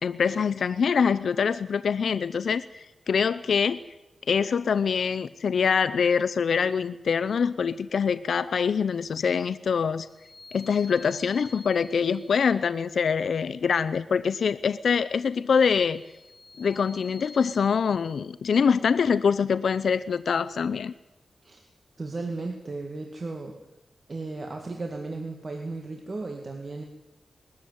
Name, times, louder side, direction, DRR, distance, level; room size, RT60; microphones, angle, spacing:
voice 1, 0.0-3.8 4.3-10.1 10.5-16.0 16.6-20.9, left 6 dB, 85° left, 15 dB, 0.6 m, -24 dB
sound 1, 10.1-12.6 15.6-17.7, left 3 dB, 35° left, 2.5 m, -49 dB
voice 2, 22.0-23.6 24.1-26.8, right 3 dB, 40° right, 3 dB, 2.3 m, -35 dB
21.0 x 13.5 x 9.5 m, 1.0 s
wide cardioid pair, 100°, 0 cm